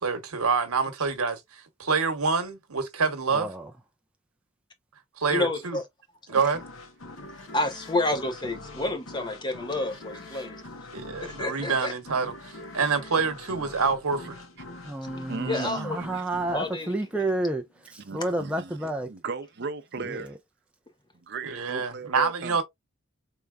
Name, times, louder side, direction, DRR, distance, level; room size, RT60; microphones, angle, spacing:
voice 1, 0.0-3.5 5.2-5.8 6.3-6.6 10.9-14.4 21.4-22.6, right 5 dB, 90° right, 1.0 m, -27 dB
voice 2, 3.3-3.7 14.8-19.1 20.0-20.4, right 2 dB, 5° right, 0.3 m, -30 dB
voice 3, 5.3-5.8 7.5-10.6 11.2-11.9 15.5-16.0 16.5-16.9, left 2 dB, 20° left, 0.7 m, -29 dB
sound 1, 6.5-18.0, left 2 dB, 65° left, 1.0 m, -44 dB
voice 4, 15.3-16.2 18.0-18.8 19.1-20.3 21.1-22.6, right 4 dB, 50° right, 0.6 m, -36 dB
4.5 x 3.4 x 2.3 m
head